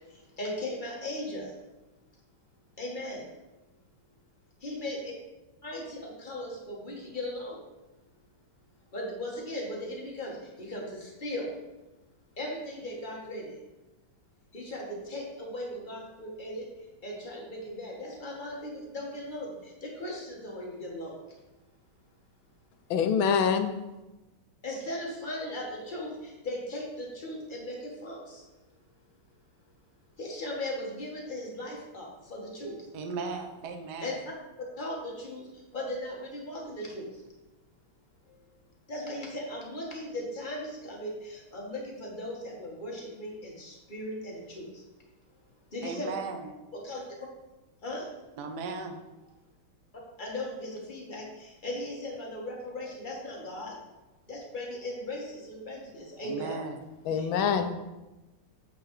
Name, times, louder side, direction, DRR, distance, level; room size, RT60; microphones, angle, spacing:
voice 1, 0.4-1.5 2.8-3.2 4.6-5.1 5.6-7.6 8.9-10.3 10.6-11.5 12.4-13.4 14.5-16.6 17.0-19.5 19.8-21.1 24.6-26.1 26.4-28.4 30.2-32.7 34.0-34.2 34.8-35.4 35.7-37.1 38.9-44.7 45.7-46.1 46.7-47.0 47.8-48.0 50.2-53.7 54.3-56.6 57.1-57.3, left 1 dB, 25° left, -2 dB, 1.5 m, -37 dB
voice 2, 22.9-23.7 57.1-57.7, left 7 dB, 70° left, 8 dB, 1.4 m, -25 dB
voice 3, 32.9-34.1 45.8-46.5 48.4-49.0 56.2-56.8, right 4 dB, 60° right, 5 dB, 1.1 m, -36 dB
8.4 x 4.7 x 4.8 m, 1.1 s
omnidirectional pair, 2.4 m